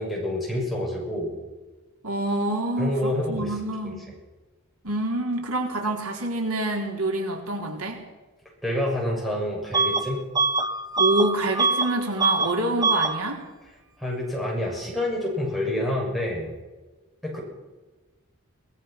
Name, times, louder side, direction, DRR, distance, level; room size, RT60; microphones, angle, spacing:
voice 1, 0.0-1.3 2.8-3.5 3.8-3.9 8.6-10.2 14.0-16.5 17.2-17.4, left 1 dB, ahead, -3 dB, 7.2 m, -27 dB
voice 2, 2.0-4.1 4.8-8.0 11.0-13.4, right 2 dB, 90° right, 2 dB, 4.1 m, -27 dB
Bus / Alarm, 9.7-10.1 10.3-11.9 12.2-12.5 12.8-13.2, right 3 dB, 20° right, 1.2 m, -23 dB
23.5 x 20.0 x 6.1 m, 1.2 s
head